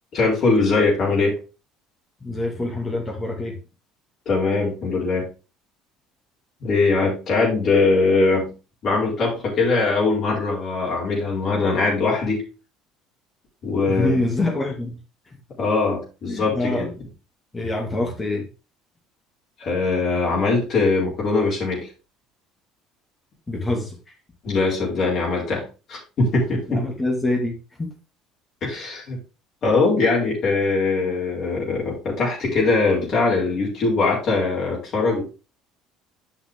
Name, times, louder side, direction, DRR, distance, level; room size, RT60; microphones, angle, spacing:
voice 1, 0.1-1.4 4.3-5.3 6.6-8.5 8.8-12.4 13.6-14.2 15.6-16.9 19.6-21.9 24.4-26.8 28.6-29.2 29.6-35.2, left 3 dB, 50° left, -4 dB, 4.3 m, -21 dB
voice 2, 2.2-3.6 13.9-15.0 15.3-15.4 16.2-16.9 17.5-18.5 23.5-24.0 26.7-28.0, left 2 dB, 20° left, 0 dB, 2.5 m, -25 dB
8.7 x 5.8 x 3.7 m, 0.32 s
hypercardioid pair, 60°, 0 cm